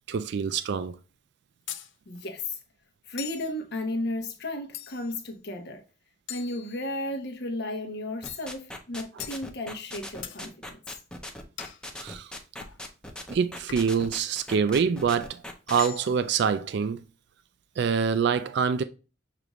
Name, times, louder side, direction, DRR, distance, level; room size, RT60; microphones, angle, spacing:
voice 1, 0.1-0.9 12.0-12.3 13.3-15.4 15.7-17.0 17.8-18.8, right 6 dB, 60° right, 0.3 m, -25 dB
sound 1, 1.7-1.9 3.2-3.5 4.7-5.2 6.3-7.2 8.3-8.5 9.2-9.4 10.2-10.4 11.6-11.8 12.6-12.8 13.7-14.0 14.7-14.9 15.7-16.3, left 10 dB, 75° left, 0.5 m, -41 dB
voice 2, 2.1-2.5 3.1-5.8 6.3-10.8, left 1 dB, 60° left, 0.9 m, -34 dB
sound 2, 8.2-15.9, left 1 dB, 5° left, 0.6 m, -39 dB
6.7 x 2.5 x 3.0 m
head